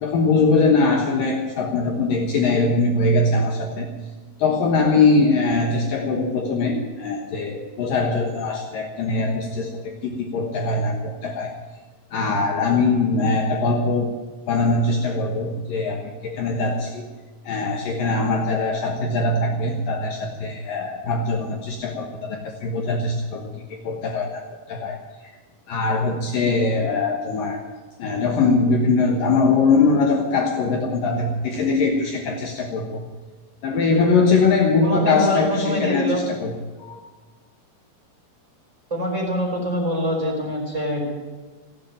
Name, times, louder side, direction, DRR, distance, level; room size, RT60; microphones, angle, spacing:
voice 1, 0.0-3.9 4.4-11.6 12.1-14.1 14.5-17.1 17.4-25.4 25.7-27.6 28.0-33.0 33.6-37.0, left 3 dB, 75° left, 2 dB, 2.0 m, -22 dB
voice 2, 34.8-36.2 38.9-41.0, equal, 15° right, -1 dB, 4.5 m, -24 dB
16.0 x 9.6 x 9.2 m, 1.3 s
omnidirectional pair, 5.9 m